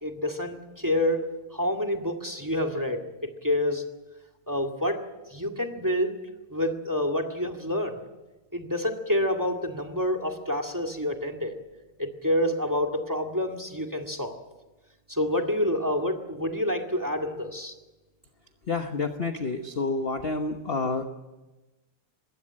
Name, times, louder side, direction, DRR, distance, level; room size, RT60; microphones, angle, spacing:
voice 1, 0.0-1.2 1.5-3.0 3.4-3.8 4.5-5.0 5.3-6.1 6.5-8.0 8.5-11.6 12.0-14.4 15.1-17.7, left 1 dB, 10° right, 5 dB, 1.7 m, -28 dB
voice 2, 18.7-21.0, left 3 dB, 40° left, 6 dB, 0.9 m, -29 dB
21.5 x 16.5 x 8.8 m, 1.1 s
omnidirectional pair, 2.4 m